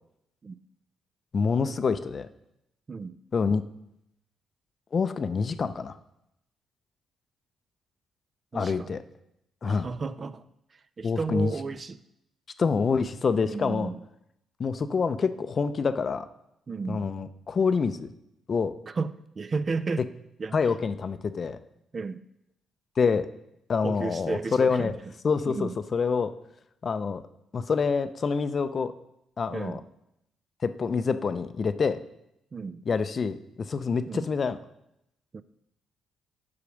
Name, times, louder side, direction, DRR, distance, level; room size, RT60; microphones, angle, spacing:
voice 1, 1.3-2.3 3.3-3.6 4.9-6.0 8.5-9.0 9.6-9.9 11.0-11.5 12.6-13.9 14.6-16.3 16.9-18.1 18.5-18.7 20.5-21.6 23.0-23.3 23.7-24.9 25.2-26.3 26.8-27.2 27.5-28.9 29.4-29.8 30.6-32.0 32.9-33.4 33.7-34.6, left 5 dB, 45° left, 12 dB, 0.5 m, -26 dB
voice 2, 8.5-8.9 9.6-10.4 10.7-12.0 13.4-14.0 16.7-17.0 18.9-20.0 20.4-20.6 21.9-22.2 23.8-24.9 25.5-25.7 29.5-29.8 32.5-32.8 34.1-34.3 35.3-35.4, right 4 dB, 35° right, 14 dB, 0.4 m, -33 dB
8.5 x 4.8 x 6.3 m, 0.82 s
cardioid pair, 90°, 0 cm